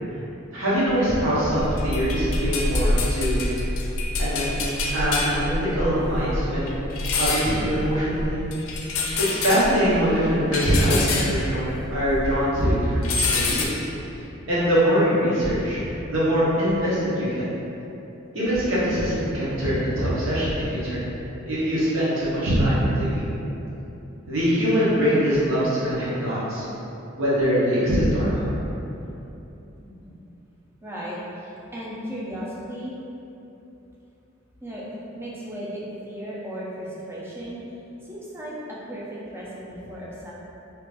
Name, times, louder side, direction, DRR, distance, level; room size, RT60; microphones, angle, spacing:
voice 1, 0.5-3.4 4.2-4.5 4.9-6.7 7.2-8.4 9.3-13.0 13.3-13.8 14.5-15.8 16.1-17.4 18.3-21.0 21.5-23.3 24.3-26.6 27.2-28.4, equal, 75° right, -10 dB, 1.0 m, -23 dB
sound 1, 1.6-12.4 12.7-13.6, left 2 dB, 85° left, 0.4 m, -27 dB
voice 2, 29.8-30.2 30.8-32.9 34.6-37.6 38.0-40.3, equal, 10° right, -7 dB, 0.4 m, -36 dB
2.9 x 2.5 x 3.4 m, 3.0 s
head